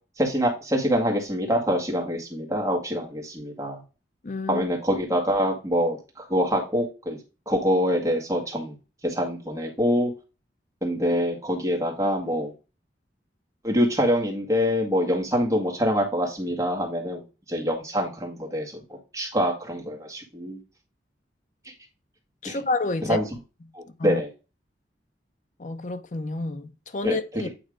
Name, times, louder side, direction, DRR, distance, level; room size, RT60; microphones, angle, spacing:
voice 1, 0.2-3.8 4.5-7.2 7.5-8.7 9.0-10.1 10.8-12.5 13.6-17.2 17.5-20.6 22.5-22.6 23.1-23.2 23.7-24.3 27.0-27.2, equal, 15° right, 1.8 m, -25 dB
voice 2, 4.2-4.6 22.4-23.2 23.9-24.2 25.6-27.5, left 3 dB, 40° left, 0.6 m, -29 dB
9.0 x 3.1 x 5.0 m
head